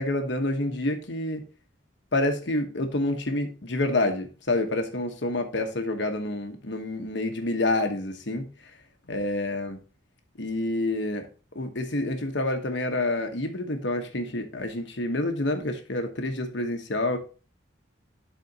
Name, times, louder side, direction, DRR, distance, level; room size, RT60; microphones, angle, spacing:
voice 1, 0.0-1.4 2.1-8.5 9.1-9.8 10.4-11.3 11.5-17.2, left 2 dB, 60° left, 1.1 m, -28 dB
12.0 x 4.2 x 2.8 m
head